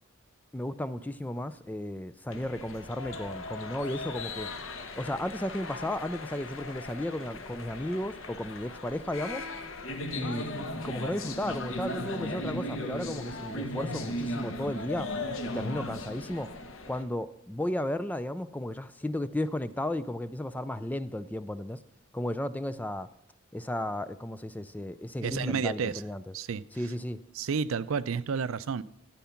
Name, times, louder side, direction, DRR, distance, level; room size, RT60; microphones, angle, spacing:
voice 1, 0.5-4.5 5.0-9.4 10.2-15.1 15.4-16.5 16.9-21.8 22.1-23.1 23.5-26.2 26.8-27.2, left 1 dB, 10° left, 0.4 m, -34 dB
sound 1, 2.3-17.0, left 1 dB, 75° left, 1.2 m, -37 dB
voice 2, 25.2-26.0 26.3-26.6 27.3-28.8, right 6 dB, 85° right, 0.5 m, -30 dB
14.0 x 8.4 x 5.8 m
head